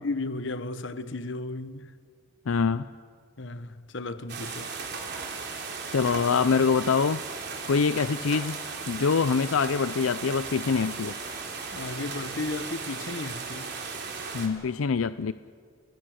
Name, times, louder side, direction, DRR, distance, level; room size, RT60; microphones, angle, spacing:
voice 1, 0.0-1.9 3.4-4.8 11.7-13.7, left 2 dB, 60° left, 1.1 m, -34 dB
voice 2, 2.5-2.9 5.9-7.2 7.7-8.6 8.9-11.1 14.3-15.3, left 5 dB, 85° left, 0.5 m, -24 dB
sound 1, 4.3-14.5, right 4 dB, 55° right, 3.5 m, -36 dB
29.5 x 20.5 x 6.5 m
head